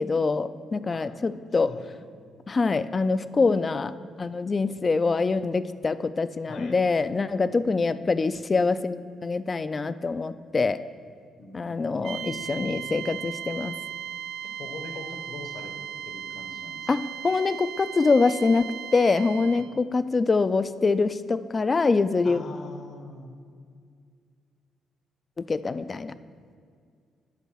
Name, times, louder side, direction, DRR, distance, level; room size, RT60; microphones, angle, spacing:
voice 1, 0.0-1.8 2.5-10.8 11.5-13.8 16.9-22.4 25.4-26.1, left 4 dB, 30° left, 14 dB, 0.3 m, -25 dB
voice 2, 1.5-2.0 6.5-6.8 7.5-8.0 11.4-12.8 14.4-15.7 16.0-16.9 22.2-23.3, left 3 dB, 65° left, 5 dB, 1.2 m, -43 dB
sound 1, 12.0-19.8, right 9 dB, 75° right, 0.3 m, -37 dB
8.2 x 5.7 x 6.2 m, 2.1 s
cardioid pair, 90°, 0 cm